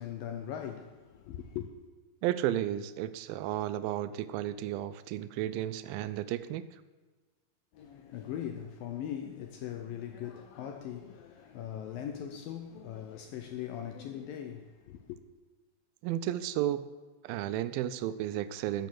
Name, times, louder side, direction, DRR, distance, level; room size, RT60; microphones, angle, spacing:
voice 1, 0.0-1.7 7.7-15.2, left 9 dB, 75° left, 2.2 m, -40 dB
voice 2, 2.2-6.8 16.0-16.8 17.2-18.9, right 12 dB, 85° right, 2.1 m, -33 dB
14.5 x 9.4 x 7.7 m
omnidirectional pair, 4.8 m